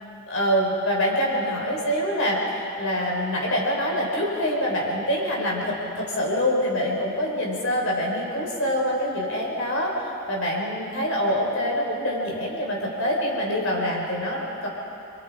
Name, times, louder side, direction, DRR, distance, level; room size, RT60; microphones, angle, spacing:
voice 1, 0.3-9.9 10.3-14.7, equal, 70° left, -2 dB, 5.1 m, -25 dB
29.0 x 22.5 x 5.0 m, 2.8 s
head